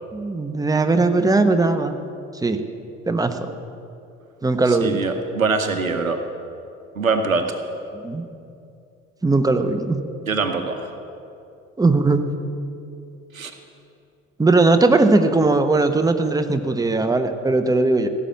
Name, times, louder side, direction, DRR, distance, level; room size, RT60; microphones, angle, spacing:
voice 1, 0.1-1.9 2.4-2.6 3.1-3.5 4.4-5.0 7.9-8.3 9.2-10.0 11.8-12.4 14.4-18.1, right 3 dB, 10° right, 8 dB, 1.1 m, -19 dB
voice 2, 4.7-6.2 7.0-7.5 10.3-10.9 13.3-13.5, right 4 dB, 85° right, 8 dB, 0.9 m, -23 dB
16.5 x 7.4 x 9.8 m, 2.6 s
figure-of-eight pair, 50°, 40 cm